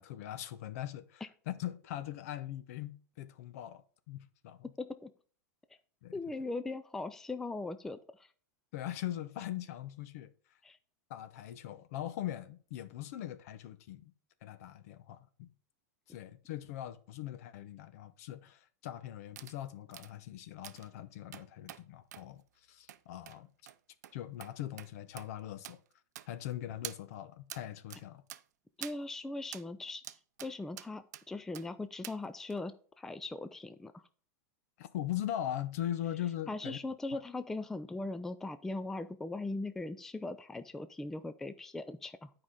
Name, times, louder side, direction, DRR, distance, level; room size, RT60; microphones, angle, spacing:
voice 1, 0.0-4.7 6.0-6.1 8.7-10.3 11.1-14.1 14.4-15.5 16.1-22.4 22.7-23.5 24.1-25.8 26.3-28.2 34.8-36.8 37.1-37.2, left 12 dB, 65° left, 0.8 m, -41 dB
voice 2, 4.8-5.1 6.1-8.3 10.6-10.8 28.8-30.0 30.4-34.0 36.5-42.3, left 2 dB, 5° left, 0.3 m, -39 dB
sound 1, 19.4-19.6 19.9-20.1 20.6-20.9 21.3-21.8 22.1-22.3 22.9-23.0 23.3-23.4 23.7-23.8 24.0-24.1 24.4-24.5 24.8-24.9 25.2-25.3 25.6-25.8 26.2-26.5 26.8-27.0 27.5-27.6 27.9-28.0 28.3-28.4 28.8-29.0 29.5-29.7 30.0-30.5 30.8-31.2 31.5-31.7 32.0-32.2 32.5-32.6, right 12 dB, 85° right, 0.5 m, -46 dB
9.5 x 4.9 x 3.8 m
supercardioid pair, 145°, 9 cm